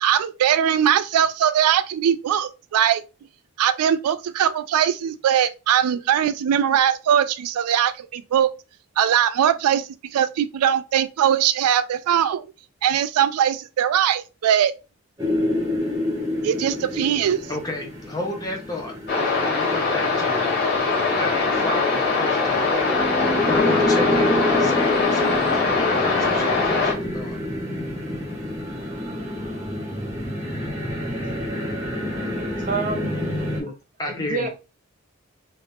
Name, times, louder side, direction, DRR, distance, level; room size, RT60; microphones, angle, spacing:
voice 1, 0.0-3.0 3.6-8.5 9.0-12.5 12.8-14.7 16.4-17.4, right 9 dB, 85° right, 0.3 m, -21 dB
sound 1, 15.2-33.6, left 1 dB, 15° right, 0.9 m, -28 dB
voice 2, 17.5-20.6 21.2-22.7 23.4-27.4 33.6-33.7 34.0-34.5, left 2 dB, 15° left, 0.7 m, -32 dB
sound 2, 19.1-26.9, left 4 dB, 45° left, 1.2 m, -22 dB
voice 3, 32.2-33.3 34.1-34.5, right 4 dB, 35° right, 0.6 m, -29 dB
2.8 x 2.5 x 3.5 m
head